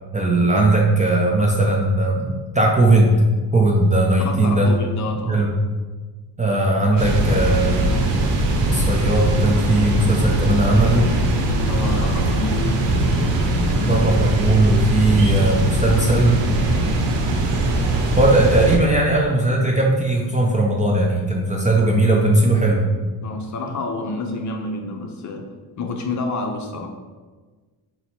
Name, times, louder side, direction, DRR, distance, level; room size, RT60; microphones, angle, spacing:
voice 1, 0.1-3.2 3.5-4.7 5.3-5.5 6.4-8.3 8.6-11.1 13.9-16.4 18.2-22.9, right 2 dB, 20° right, -2 dB, 0.4 m, -18 dB
voice 2, 4.2-5.5 6.5-7.4 11.4-12.9 13.2-14.1 15.9-17.0 23.2-25.5 25.8-26.9, left 2 dB, 45° left, 3 dB, 0.6 m, -30 dB
sound 1, 7.0-18.8, right 1 dB, 80° right, 0.7 m, -20 dB
4.0 x 2.1 x 4.2 m, 1.4 s
cardioid pair, 110°, 43 cm